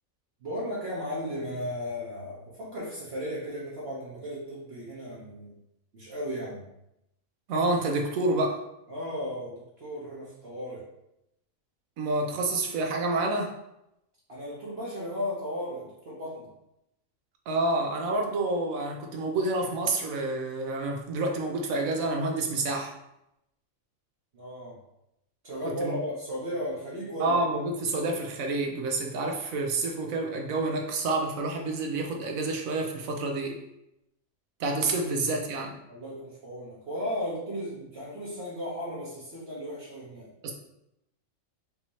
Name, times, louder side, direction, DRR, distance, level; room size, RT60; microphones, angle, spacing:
voice 1, 0.4-5.5 5.9-6.7 8.9-10.9 14.3-16.5 24.3-24.8 25.4-27.4 35.0-35.1 35.9-40.3, equal, 50° right, -7 dB, 1.2 m, -35 dB
voice 2, 7.5-8.6 12.0-13.5 17.5-23.0 25.8-26.0 27.2-33.6 34.6-35.8 40.4-40.5, right 2 dB, 85° right, 2 dB, 1.2 m, -28 dB
5.2 x 2.8 x 3.0 m, 0.84 s
omnidirectional pair, 1.4 m